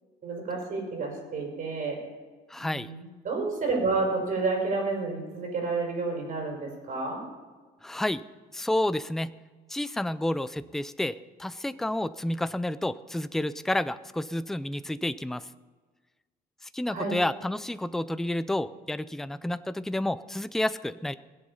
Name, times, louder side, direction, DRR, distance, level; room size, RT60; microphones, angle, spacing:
voice 1, 0.2-2.0 2.6-7.2 16.9-17.1, right 3 dB, 50° right, 0 dB, 5.5 m, -30 dB
voice 2, 2.5-2.9 7.8-8.2 8.5-9.3 9.7-15.4 16.6-21.1, left 1 dB, ahead, 14 dB, 0.4 m, -30 dB
21.0 x 7.9 x 5.5 m, 1.4 s
cardioid pair, 110°, 17 cm